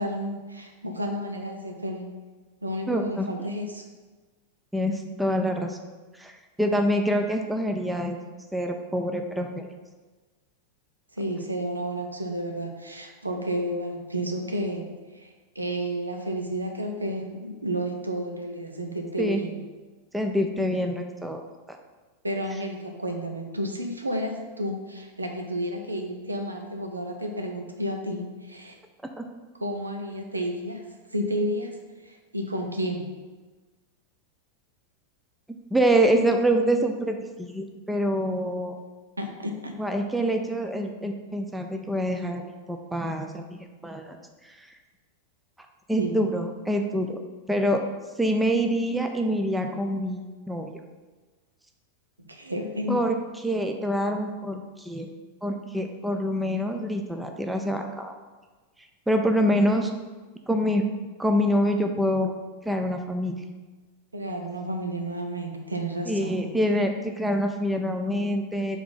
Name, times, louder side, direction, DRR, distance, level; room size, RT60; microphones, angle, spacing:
voice 1, 0.0-2.1 2.6-3.8 11.2-14.9 15.1-19.6 22.2-28.8 29.6-30.8 31.1-31.7 32.0-33.1 39.2-39.7 46.0-46.2 52.3-53.0 64.1-66.5, equal, 80° right, 3 dB, 0.7 m, -31 dB
voice 2, 2.9-3.3 4.7-5.8 6.2-8.2 8.5-9.6 19.2-19.4 20.1-21.4 29.2-29.3 35.7-38.8 39.8-43.6 43.8-44.2 44.6-44.7 45.9-47.2 47.5-47.8 48.2-50.7 52.9-55.1 55.4-58.1 59.1-59.9 60.5-60.8 61.2-62.4 62.7-63.4 66.1-68.8, equal, 5° right, 4 dB, 0.5 m, -26 dB
4.7 x 3.6 x 5.4 m, 1.3 s
figure-of-eight pair, 90°, 0 cm